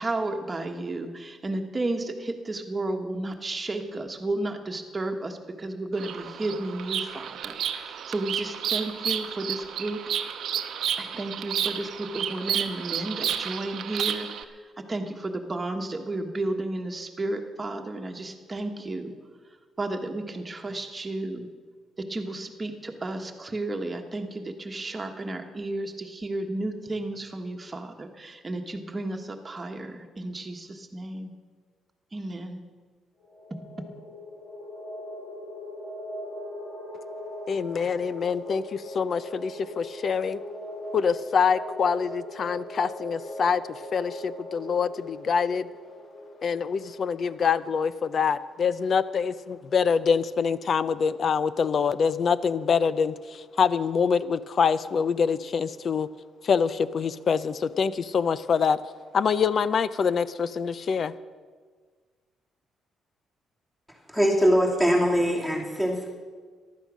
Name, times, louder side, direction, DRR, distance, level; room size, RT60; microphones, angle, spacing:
voice 1, 0.0-10.1 11.0-19.2 19.8-21.5 22.0-31.3 32.1-32.6, right 2 dB, 25° right, 4 dB, 1.4 m, -33 dB
Bird vocalization bird call bird song, 5.9-14.4, right 9 dB, 70° right, 0.8 m, -31 dB
sound 1, 33.2-47.6, left 1 dB, 75° left, 5.5 m, -40 dB
voice 2, 37.5-40.4 40.9-43.6 43.9-45.7 46.4-56.1 56.4-58.8 59.1-61.1, left 6 dB, 45° left, 16 dB, 0.6 m, -25 dB
voice 3, 64.1-66.1, equal, 10° left, -1 dB, 2.6 m, -22 dB
14.5 x 11.5 x 6.2 m, 1.5 s
cardioid pair, 120°, 0 cm